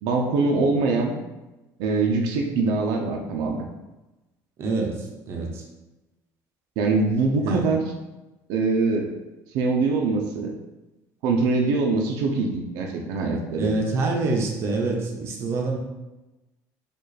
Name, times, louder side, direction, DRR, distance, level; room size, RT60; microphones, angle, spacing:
voice 1, 0.0-1.2 1.8-3.7 6.8-7.8 8.5-9.1 9.5-10.5 11.2-13.7, right 3 dB, 75° right, 1 dB, 0.7 m, -23 dB
voice 2, 4.6-5.6 7.4-7.6 13.5-15.8, right 3 dB, 40° right, 0 dB, 0.7 m, -26 dB
5.3 x 2.5 x 4.0 m, 1.1 s
cardioid pair, 165°, 7 cm